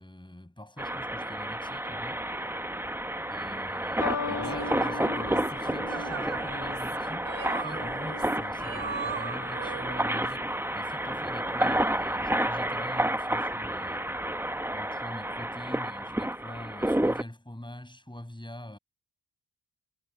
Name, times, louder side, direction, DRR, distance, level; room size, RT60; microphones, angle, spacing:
voice 1, 0.0-2.3 3.3-7.3 7.6-14.1 14.7-18.8, left 1 dB, 10° left, 7.8 m, -44 dB
sound 1, 0.8-17.2, right 1 dB, 5° right, 0.8 m, -30 dB
sound 2, 4.0-10.5 11.4-11.8, left 5 dB, 40° left, 1.0 m, -40 dB
sound 3, 4.4-10.3, right 6 dB, 80° right, 1.1 m, -40 dB
wide cardioid pair, 95°, 45 cm